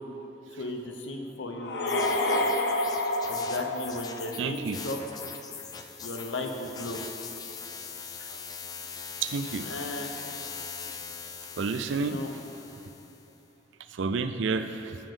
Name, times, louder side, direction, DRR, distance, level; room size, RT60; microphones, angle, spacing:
voice 1, 0.6-1.7 3.3-5.0 6.0-7.0 9.6-10.1 12.0-12.3, left 2 dB, 85° left, 3 dB, 0.9 m, -35 dB
sound 1, 1.6-4.6, left 1 dB, 65° left, 0.7 m, -28 dB
sound 2, 1.9-13.3, left 6 dB, 20° left, 0.3 m, -41 dB
voice 2, 4.4-4.8 9.2-9.6 11.6-12.2 14.0-15.0, right 4 dB, 85° right, 10 dB, 0.5 m, -30 dB
14.5 x 5.3 x 3.8 m, 2.9 s
head